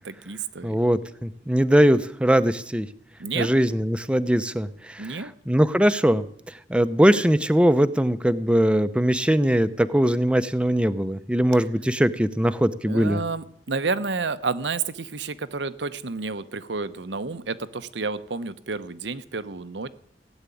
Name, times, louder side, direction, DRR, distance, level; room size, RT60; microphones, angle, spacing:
voice 1, 0.0-0.8 3.2-3.5 5.0-5.3 12.8-19.9, right 4 dB, 85° right, 12 dB, 0.9 m, -30 dB
voice 2, 0.6-2.9 3.3-13.2, equal, 5° right, 12 dB, 0.7 m, -21 dB
17.0 x 8.1 x 9.9 m, 0.69 s
head